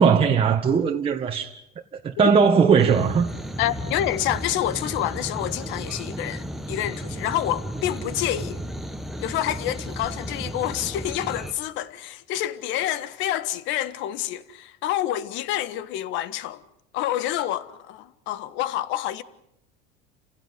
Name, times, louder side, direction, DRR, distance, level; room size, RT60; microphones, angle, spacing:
voice 1, 0.0-1.5 1.9-3.3, right 6 dB, 25° right, 1.6 m, -19 dB
sound 1, 2.8-11.5, equal, ahead, 1.5 m, -34 dB
voice 2, 3.6-8.6 9.2-16.6 16.9-19.2, left 12 dB, 60° left, 1.6 m, -28 dB
29.5 x 16.5 x 9.7 m
cardioid pair, 140°, 21 cm